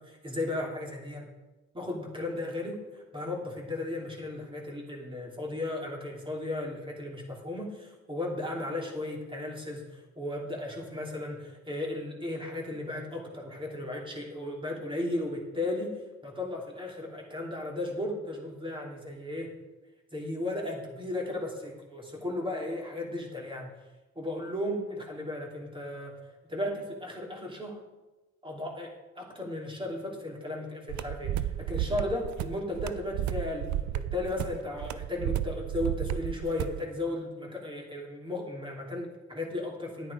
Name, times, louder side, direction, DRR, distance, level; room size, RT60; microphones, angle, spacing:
voice 1, 0.1-1.3 1.7-15.9 16.2-19.5 20.1-23.7 24.1-26.2 26.5-27.8 28.4-40.1, left 1 dB, 15° right, -1 dB, 2.9 m, -35 dB
sound 1, 30.9-36.8, right 12 dB, 70° right, 0.6 m, -33 dB
9.5 x 9.3 x 4.9 m, 1.1 s
cardioid pair, 90°, 30 cm